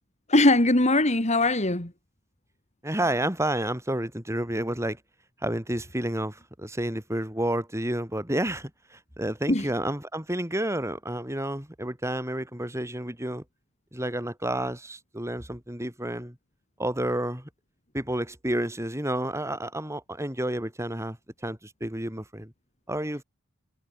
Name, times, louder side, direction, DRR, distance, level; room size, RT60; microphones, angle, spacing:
voice 1, 0.3-1.9 9.5-9.7, left 2 dB, 30° left, 2.7 m, -21 dB
voice 2, 2.8-5.0 5.4-13.4 13.9-16.3 16.8-17.5 17.9-21.2 21.4-22.5 22.9-23.2, right 1 dB, 15° right, 6.8 m, -30 dB
head